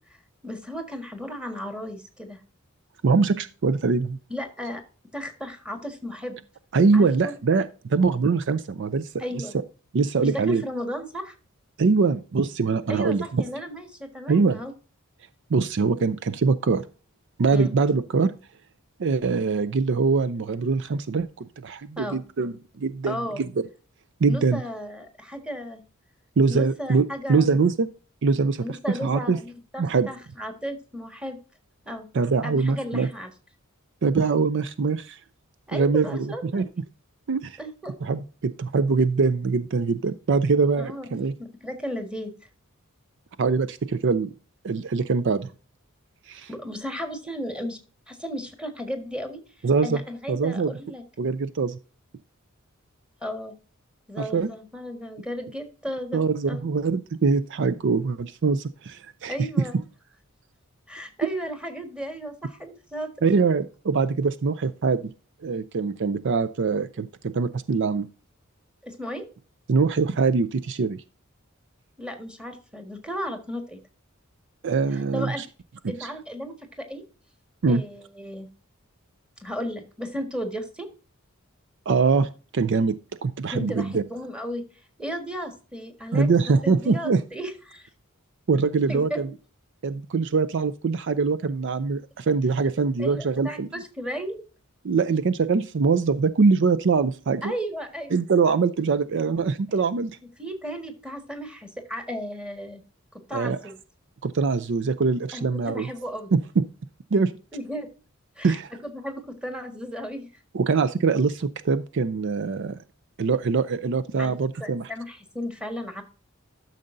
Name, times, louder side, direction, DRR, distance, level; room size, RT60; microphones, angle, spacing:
voice 1, 0.4-2.4 4.3-4.8 5.1-6.4 6.9-7.3 9.2-9.5 10.2-11.3 12.9-14.7 17.5-17.8 22.0-22.2 23.0-23.4 24.3-25.8 26.5-27.5 28.6-31.4 31.8-32.1 32.4-33.3 35.7-36.7 37.6-38.0 40.8-41.1 41.4-42.3 46.5-47.8 48.1-51.0 53.2-53.5 54.1-56.2 56.5-56.7 59.3-59.8 60.9-63.1 68.8-69.3 72.0-73.8 75.1-75.4 75.9-77.0 77.7-78.5 79.4-80.9 83.5-87.9 88.9-89.2 93.0-94.4 97.4-98.1 99.7-99.8 100.4-102.8 103.1-103.8 105.3-106.3 107.5-107.9 108.4-110.3 114.2-116.0, equal, 5° right, 5 dB, 1.6 m, -34 dB
voice 2, 3.0-4.2 6.7-9.1 9.9-10.6 11.8-13.4 14.3-14.6 15.5-16.8 17.4-18.3 19.0-23.5 24.2-24.6 26.4-27.9 28.2-29.4 29.8-30.1 32.1-33.1 34.0-35.2 35.7-36.6 37.3-37.6 38.0-41.3 43.4-44.3 44.6-45.5 46.3-46.5 49.6-50.0 50.3-50.7 51.2-51.8 54.2-54.5 56.1-59.4 63.2-65.1 65.4-68.1 69.7-71.0 74.6-75.4 76.0-76.1 77.6-77.8 81.9-83.0 83.2-84.0 86.1-87.2 88.5-89.3 89.8-93.7 94.8-97.5 98.1-100.2 103.3-103.6 104.2-105.9 106.3-106.6 107.1-107.3 108.4-108.7 110.5-112.8 113.2-114.9, right 4 dB, 55° right, 12 dB, 0.5 m, -23 dB
12.5 x 6.5 x 2.6 m, 0.34 s
head